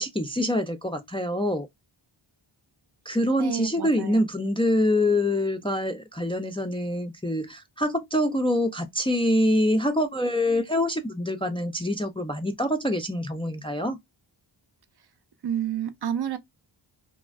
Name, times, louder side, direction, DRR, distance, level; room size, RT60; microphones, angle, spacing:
voice 1, 0.0-1.7 3.1-14.0, left 1 dB, 10° left, 0.4 m, -25 dB
voice 2, 3.4-4.3 15.4-16.4, right 9 dB, 50° right, 0.6 m, -30 dB
2.4 x 2.1 x 3.3 m
cardioid pair, 40°, 50 cm